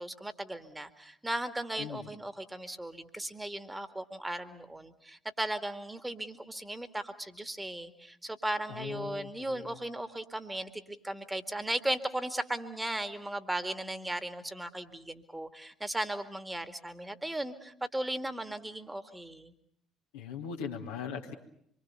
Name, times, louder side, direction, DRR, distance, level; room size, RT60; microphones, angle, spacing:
voice 1, 0.0-19.5, right 1 dB, 10° right, 10 dB, 2.2 m, -37 dB
voice 2, 8.7-9.8 20.1-21.3, left 7 dB, 70° left, 1 dB, 2.0 m, -40 dB
26.0 x 23.5 x 6.8 m, 0.70 s
figure-of-eight pair, 50°, 0 cm